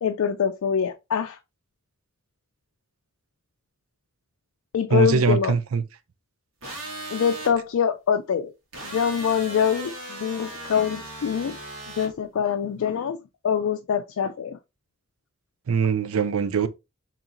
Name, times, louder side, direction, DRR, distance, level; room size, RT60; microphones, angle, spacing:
voice 1, 0.0-1.4 4.7-5.6 7.1-8.5 8.8-11.6 12.0-13.2 13.4-14.6, left 7 dB, 85° left, 0.4 m, -24 dB
voice 2, 4.9-5.8 15.7-16.7, right 5 dB, 90° right, 0.5 m, -22 dB
sound 1, 6.6-7.5 8.7-12.1, right 1 dB, 70° right, 1.6 m, -37 dB
3.8 x 2.9 x 2.8 m
head